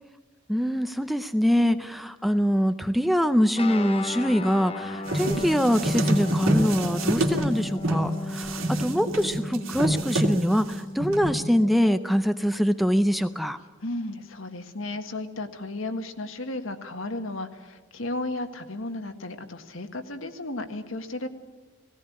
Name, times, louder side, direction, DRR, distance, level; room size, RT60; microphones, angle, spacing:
voice 1, 0.5-13.6, equal, ahead, 10 dB, 0.5 m, -24 dB
Guitar, 3.5-13.5, left 1 dB, 30° left, 0.9 m, -36 dB
sound 1, 5.1-8.0 8.4-10.7 11.0-11.3, right 1 dB, 85° right, 2.8 m, -26 dB
voice 2, 13.8-21.3, left 2 dB, 75° left, 6 dB, 1.7 m, -34 dB
18.5 x 17.5 x 8.6 m, 1.2 s
head